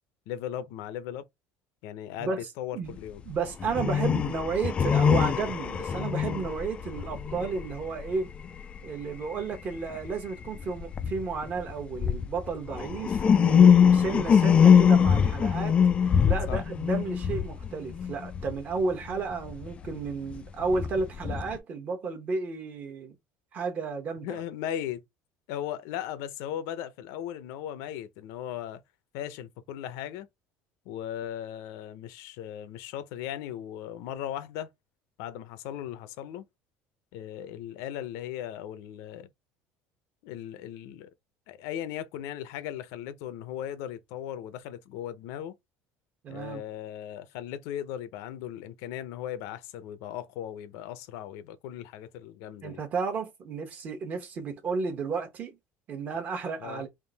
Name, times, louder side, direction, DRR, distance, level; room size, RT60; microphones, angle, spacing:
voice 1, 0.3-1.3 1.8-3.2 16.5-16.6 24.2-25.0 25.5-28.8 29.1-30.3 30.9-34.7 35.2-36.4 37.1-39.3 40.2-41.1 41.5-45.5 46.3-52.8 56.6-56.8, left 11 dB, 75° left, 0.7 m, -37 dB
voice 2, 3.2-8.3 8.8-15.8 16.2-23.1 23.5-24.4 46.2-46.6 52.6-55.5 55.9-56.9, right 4 dB, 30° right, 1.0 m, -32 dB
sound 1, 3.3-3.4 3.6-8.8 9.2-9.6 10.0-10.1 10.4-18.6 19.1-21.6, left 7 dB, 20° left, 0.3 m, -23 dB
3.6 x 2.6 x 3.9 m
cardioid pair, 170°, 5 cm